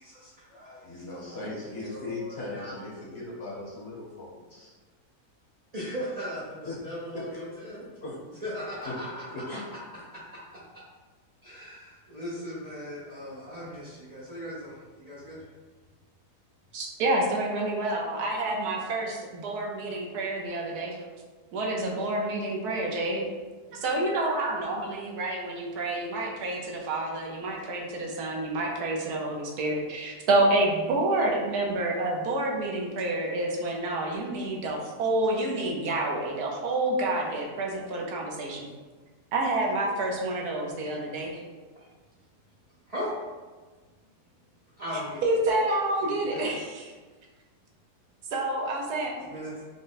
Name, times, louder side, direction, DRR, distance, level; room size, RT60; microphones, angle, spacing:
voice 1, 0.0-2.7 5.7-7.8 8.4-9.2 11.4-15.4 22.3-22.4 41.8-41.9 42.9-43.1 44.8-45.3 46.0-46.5 49.2-49.6, equal, 50° right, -8 dB, 0.4 m, -38 dB
voice 2, 0.8-4.7 6.6-6.8 7.1-7.4 8.0-8.2 8.8-8.9 9.3-9.6, left 2 dB, 50° left, -5 dB, 1.0 m, -38 dB
voice 3, 16.7-21.0 21.5-23.2 23.7-38.7 39.3-41.4 45.2-46.9 48.3-49.2, right 2 dB, 75° right, 0 dB, 1.2 m, -28 dB
5.1 x 2.1 x 3.9 m, 1.3 s
omnidirectional pair, 1.7 m